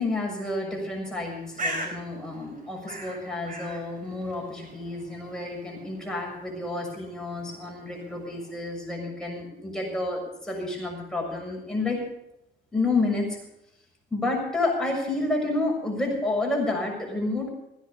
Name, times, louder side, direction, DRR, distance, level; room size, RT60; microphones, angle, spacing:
voice 1, 0.0-12.0 12.7-13.3 14.1-17.5, left 2 dB, 5° left, -2 dB, 6.8 m, -29 dB
Bird, 1.1-8.7, right 1 dB, 40° right, 4.4 m, -41 dB
16.0 x 10.5 x 6.8 m, 0.83 s
cardioid pair, 90°, 20 cm